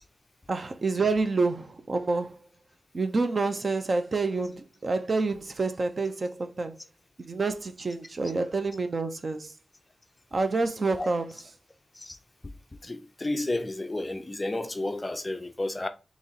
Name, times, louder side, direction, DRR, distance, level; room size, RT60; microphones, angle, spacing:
voice 1, 0.5-2.4 2.9-6.8 7.3-9.5 10.3-11.4, right 3 dB, 45° right, 0.5 m, -28 dB
voice 2, 12.8-15.9, left 2 dB, 20° left, 0.4 m, -32 dB
4.0 x 3.0 x 3.8 m
wide cardioid pair, 145°, 0 cm